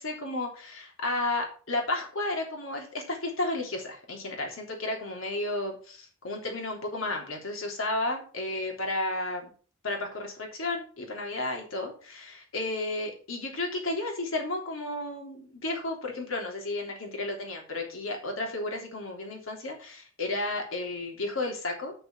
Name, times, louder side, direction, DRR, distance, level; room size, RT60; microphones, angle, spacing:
voice 1, 0.0-9.5 9.8-21.9, left 2 dB, 70° left, 2 dB, 3.3 m, -33 dB
8.2 x 6.6 x 6.1 m, 0.40 s
head